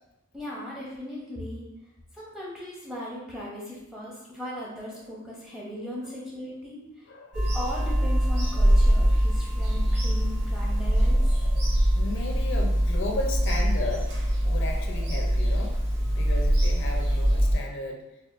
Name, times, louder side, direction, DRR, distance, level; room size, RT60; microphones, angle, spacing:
voice 1, 0.3-1.6 2.1-6.8 7.5-11.3, left 1 dB, ahead, -5 dB, 0.6 m, -38 dB
Bird vocalization bird call bird song / Telephone, 7.3-17.6, equal, 55° right, 0.9 m, -23 dB
voice 2, 11.9-18.0, left 2 dB, 60° left, 1 dB, 0.4 m, -35 dB
4.1 x 2.1 x 2.4 m, 0.92 s
head